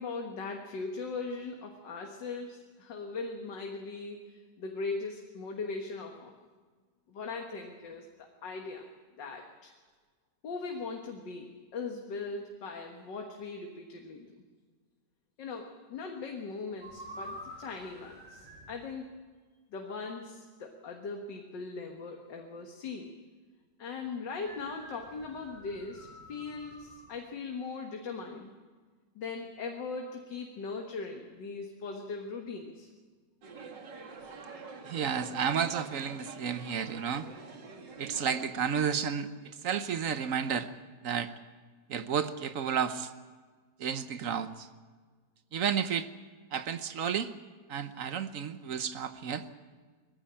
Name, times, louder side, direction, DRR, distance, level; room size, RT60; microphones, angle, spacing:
voice 1, 0.0-6.4 7.1-8.1 8.4-8.9 9.2-9.7 10.4-14.4 15.4-19.1 19.7-23.1 23.8-28.5 29.2-32.9, left 4 dB, 80° left, 2 dB, 2.1 m, -39 dB
sound 1, 16.8-18.8 24.4-27.1, equal, 25° right, 4.5 m, -48 dB
sound 2, 33.4-38.5, right 4 dB, 75° right, 2.6 m, -46 dB
voice 2, 34.8-37.3 38.0-40.7 41.0-41.3 41.9-43.1 43.8-44.7 45.5-46.1 46.5-47.3 47.7-49.5, right 7 dB, 55° right, 11 dB, 1.1 m, -32 dB
20.5 x 15.5 x 8.7 m, 1.4 s
omnidirectional pair, 1.9 m